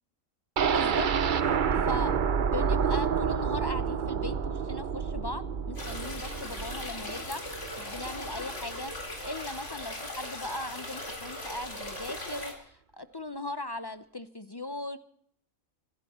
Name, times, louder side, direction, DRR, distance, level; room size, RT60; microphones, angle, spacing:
voice 1, 0.6-2.1 2.4-8.9 9.2-15.0, left 2 dB, 30° left, 11 dB, 0.4 m, -38 dB
sound 1, 0.6-8.4 8.8-8.9 9.2-9.3, right 7 dB, 45° right, 0.7 m, -29 dB
sound 2, 5.8-12.5, left 1 dB, 55° left, 4.1 m, -39 dB
26.0 x 12.0 x 4.3 m, 0.66 s
omnidirectional pair, 1.5 m